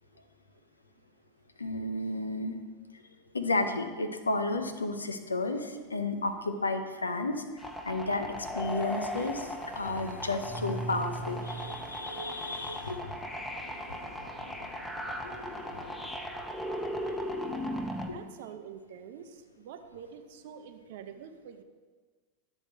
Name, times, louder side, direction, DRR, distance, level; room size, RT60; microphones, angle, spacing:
voice 1, 1.6-2.5 3.3-7.3 7.8-9.5 9.8-13.0, left 2 dB, 90° left, 8 dB, 0.6 m, -32 dB
sound 1, 7.6-18.1, equal, 5° left, 0.7 m, -37 dB
sound 2, 8.4-16.2, left 3 dB, 65° left, 1.1 m, -49 dB
voice 2, 18.1-21.6, right 8 dB, 60° right, 8 dB, 0.6 m, -46 dB
10.0 x 3.5 x 4.6 m, 1.4 s
hypercardioid pair, 90°, 0 cm